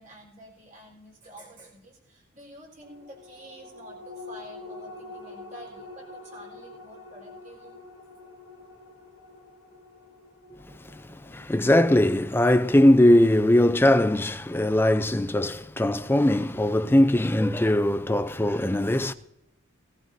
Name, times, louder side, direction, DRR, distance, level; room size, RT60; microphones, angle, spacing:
voice 1, 0.0-7.7, right 1 dB, 35° right, 4.0 m, -49 dB
sound 1, 2.8-13.6 14.0-14.1, left 2 dB, 60° left, 1.8 m, -46 dB
voice 2, 10.9-19.1, left 1 dB, 10° left, 0.4 m, -20 dB
18.0 x 15.5 x 2.7 m
head